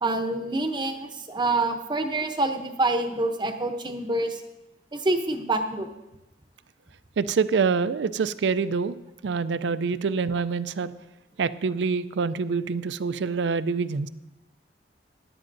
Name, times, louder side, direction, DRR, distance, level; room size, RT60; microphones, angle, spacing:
voice 1, 0.0-4.4 4.9-5.9, right 2 dB, 25° right, 6 dB, 0.7 m, -26 dB
voice 2, 7.2-8.9 9.2-10.9 11.4-14.1, right 5 dB, 85° right, 15 dB, 0.4 m, -26 dB
17.0 x 11.0 x 2.6 m, 0.96 s
head